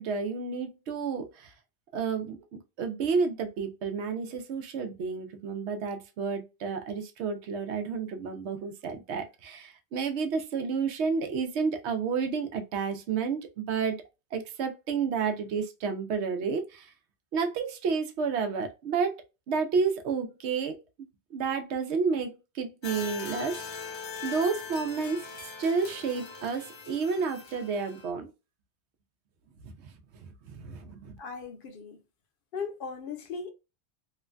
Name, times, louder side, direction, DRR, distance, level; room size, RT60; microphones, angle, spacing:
voice 1, 0.0-1.5 1.9-14.0 14.3-16.9 17.3-19.2 19.5-20.8 21.3-23.6 24.2-25.3 25.6-28.3 29.6-29.9 30.2-31.2, right 5 dB, 85° right, 0.9 m, -31 dB
sound 1, 22.8-28.1, left 5 dB, 40° left, 0.4 m, -41 dB
voice 2, 31.2-32.0 32.5-33.5, left 5 dB, 60° left, 0.8 m, -37 dB
3.1 x 2.1 x 2.4 m
omnidirectional pair, 1.1 m